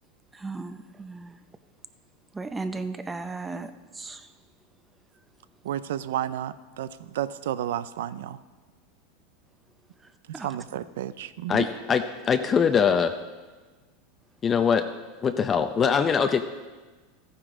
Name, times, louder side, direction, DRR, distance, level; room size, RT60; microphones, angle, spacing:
voice 1, 0.4-1.3 2.3-3.7 4.0-4.2 10.3-10.5, right 3 dB, 15° right, 10 dB, 0.7 m, -35 dB
voice 2, 5.6-8.4 10.3-11.7, right 11 dB, 80° right, 15 dB, 0.5 m, -32 dB
voice 3, 11.5-13.2 14.4-14.9 15.2-16.4, left 6 dB, 30° left, 7 dB, 0.6 m, -22 dB
14.0 x 9.7 x 3.8 m, 1.3 s
hypercardioid pair, 110°, 0 cm